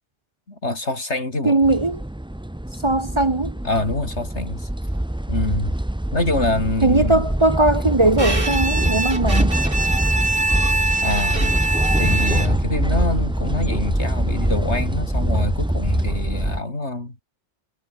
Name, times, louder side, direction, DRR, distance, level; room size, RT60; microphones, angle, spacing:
voice 1, 0.5-1.6 3.6-4.7 5.3-5.8 6.1-7.2 11.0-11.5 12.0-17.2, left 2 dB, 75° left, 5.2 m, -25 dB
voice 2, 1.4-2.0 2.8-3.5 6.8-9.5, right 2 dB, 25° right, 1.0 m, -19 dB
sound 1, 1.6-16.6, right 1 dB, 5° right, 0.7 m, -23 dB
Bowed string instrument, 8.2-12.8, right 2 dB, 50° right, 3.5 m, -24 dB
omnidirectional pair, 1.2 m